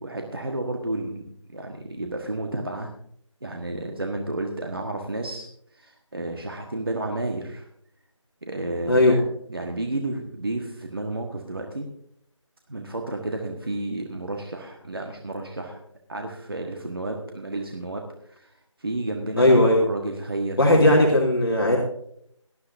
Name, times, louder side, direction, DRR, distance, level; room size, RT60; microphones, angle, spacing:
voice 1, 0.0-2.9 3.4-5.5 5.7-7.7 8.4-9.2 9.5-11.9 12.7-15.8 16.1-18.5 18.8-21.1, right 2 dB, 45° right, 2 dB, 1.5 m, -31 dB
voice 2, 8.9-9.2 19.4-19.8 20.6-21.8, left 1 dB, 45° left, -2 dB, 2.4 m, -17 dB
18.0 x 13.0 x 2.7 m, 0.67 s
figure-of-eight pair, 175°, 17 cm